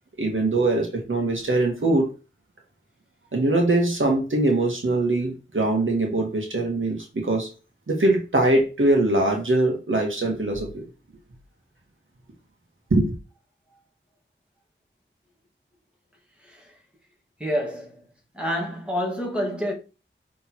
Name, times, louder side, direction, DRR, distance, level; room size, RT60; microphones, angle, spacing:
voice 1, 0.2-2.1 3.3-7.5 7.9-10.8 12.9-13.1, right 2 dB, 75° right, 1.7 m, -22 dB
voice 2, 17.4-18.0 18.3-19.7, equal, 5° right, 2.3 m, -28 dB
6.1 x 3.7 x 4.2 m
wide cardioid pair, 70°, 20 cm